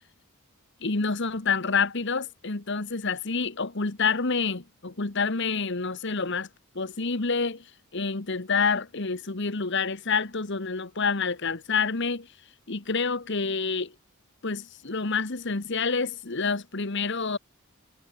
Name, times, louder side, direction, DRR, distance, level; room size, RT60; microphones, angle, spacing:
voice 1, 0.8-6.5 6.7-7.6 7.9-12.3 12.7-13.9 14.4-17.4, left 4 dB, 55° left, 1.4 m, -28 dB
head